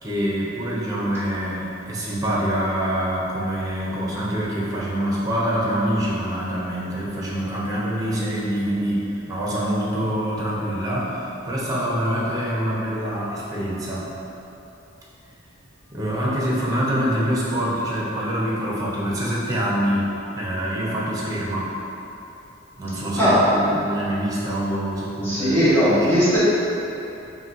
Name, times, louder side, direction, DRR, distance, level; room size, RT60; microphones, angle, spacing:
voice 1, 0.0-14.1 15.9-20.1 20.3-21.7 22.8-25.5 25.8-25.9, equal, 20° right, -6 dB, 0.8 m, -25 dB
voice 2, 25.2-26.4, equal, 10° left, -13 dB, 1.5 m, -18 dB
5.7 x 2.7 x 3.0 m, 3.0 s
head